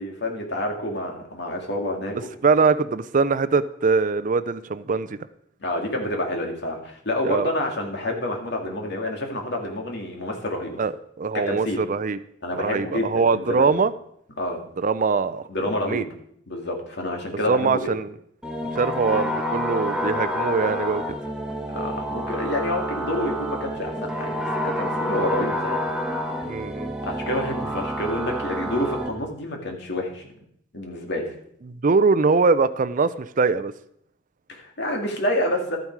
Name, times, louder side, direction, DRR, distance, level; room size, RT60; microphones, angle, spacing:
voice 1, 0.0-2.3 5.6-10.8 11.3-11.8 12.4-13.7 14.4-14.6 15.5-16.1 16.5-17.9 21.7-25.8 27.0-30.3 30.7-31.3 34.5-35.8, left 1 dB, 60° left, 2 dB, 2.4 m, -28 dB
voice 2, 2.4-5.2 7.2-7.5 10.8-10.9 11.2-12.2 12.5-13.9 14.8-15.4 15.9-16.1 17.5-18.1 18.8-21.0 26.4-26.9 31.7-33.7, right 4 dB, 45° right, 14 dB, 0.5 m, -22 dB
sound 1, 18.4-29.1, equal, 5° right, 1.5 m, -28 dB
13.0 x 9.3 x 4.7 m, 0.70 s
head